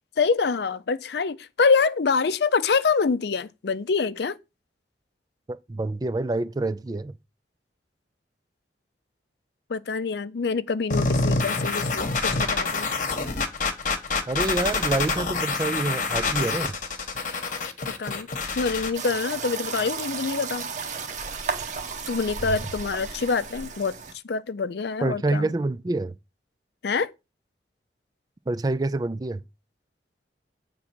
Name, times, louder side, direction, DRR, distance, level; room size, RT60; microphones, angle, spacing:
voice 1, 0.2-4.4 9.7-12.9 18.0-18.3 18.6-20.7 22.1-23.9 24.2-25.5 26.8-27.1, left 5 dB, 65° left, 0.5 m, -25 dB
voice 2, 5.5-7.1 14.3-16.8 25.0-26.1 28.5-29.4, right 2 dB, 20° right, 0.3 m, -27 dB
sound 1, 10.9-18.9, left 3 dB, 45° left, 1.1 m, -26 dB
sound 2, 18.9-24.1, right 5 dB, 40° right, 1.0 m, -33 dB
8.5 x 3.7 x 6.0 m
head